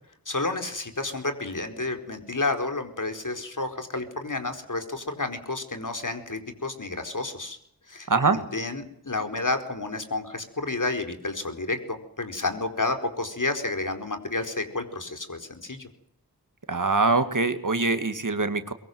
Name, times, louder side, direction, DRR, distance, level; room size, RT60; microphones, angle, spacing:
voice 1, 0.3-7.6 7.9-15.9, left 2 dB, 60° left, 7 dB, 4.5 m, -30 dB
voice 2, 8.1-8.4 16.7-18.7, right 3 dB, 60° right, 9 dB, 2.1 m, -23 dB
23.5 x 22.5 x 7.9 m, 0.71 s
wide cardioid pair, 65°, 36 cm